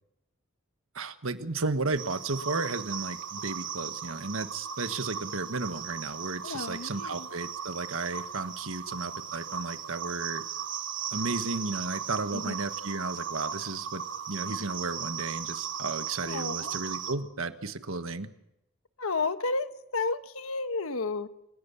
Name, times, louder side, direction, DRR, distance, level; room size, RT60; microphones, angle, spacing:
voice 1, 0.9-10.4 11.1-14.0 14.3-18.3, right 3 dB, 75° right, 9 dB, 1.4 m, -34 dB
sound 1, 2.0-17.1, right 7 dB, 55° right, 1.6 m, -37 dB
voice 2, 6.4-7.3 12.3-12.5 16.2-16.8 19.0-21.3, left 3 dB, 80° left, 10 dB, 1.2 m, -32 dB
28.0 x 17.0 x 7.0 m, 0.87 s
head